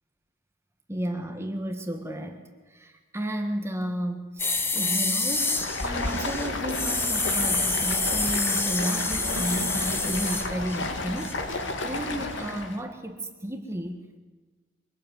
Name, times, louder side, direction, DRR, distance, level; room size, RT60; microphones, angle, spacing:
voice 1, 0.9-14.2, right 1 dB, 15° right, 5 dB, 1.7 m, -33 dB
sound 1, 4.4-10.9 11.2-11.3, left 3 dB, 10° left, 1.5 m, -28 dB
Stream, 5.2-12.8, left 2 dB, 65° left, 2.7 m, -32 dB
24.5 x 19.0 x 9.5 m, 1.3 s
head